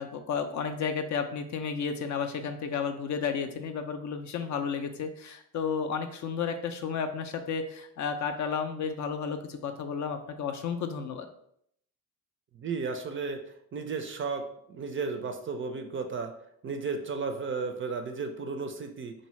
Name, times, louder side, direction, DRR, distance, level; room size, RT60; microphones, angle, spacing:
voice 1, 0.0-11.3, left 6 dB, 45° left, 7 dB, 0.4 m, -32 dB
voice 2, 12.5-13.4 13.7-14.4 14.7-16.3 16.6-19.1, right 4 dB, 30° right, 6 dB, 0.4 m, -33 dB
2.7 x 2.6 x 3.0 m, 0.70 s
hypercardioid pair, 55°, 41 cm